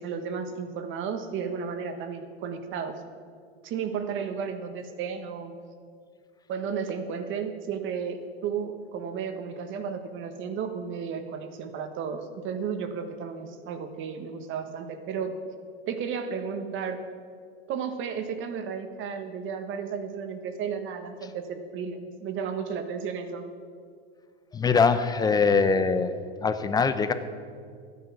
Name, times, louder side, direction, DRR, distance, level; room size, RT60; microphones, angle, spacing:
voice 1, 0.0-3.0 3.6-5.5 6.5-15.3 15.9-17.0 17.7-23.4, right 6 dB, 40° right, 8 dB, 1.3 m, -33 dB
voice 2, 24.5-26.1 26.4-27.1, left 5 dB, 10° left, 11 dB, 0.6 m, -22 dB
13.0 x 9.5 x 6.0 m, 2.1 s
supercardioid pair, 125°, 31 cm